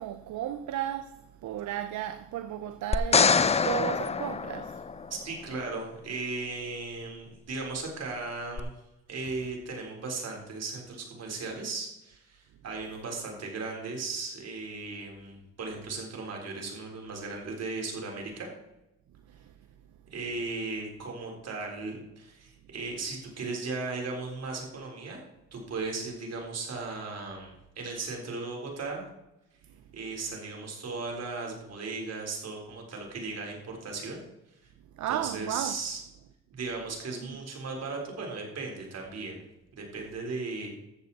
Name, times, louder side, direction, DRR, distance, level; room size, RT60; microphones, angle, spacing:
voice 1, 0.0-4.9 19.5-19.6 35.0-35.8, right 12 dB, 70° right, 0.7 m, -34 dB
sound 1, 2.9-5.2 8.6-8.7, left 5 dB, 20° left, 0.5 m, -25 dB
voice 2, 5.1-8.7 9.1-18.5 20.1-25.2 25.5-29.1 29.9-34.2 35.1-36.0 36.5-39.4 39.7-40.7, right 3 dB, 55° right, 3.9 m, -36 dB
14.0 x 7.7 x 4.1 m
cardioid pair, 90°, 30 cm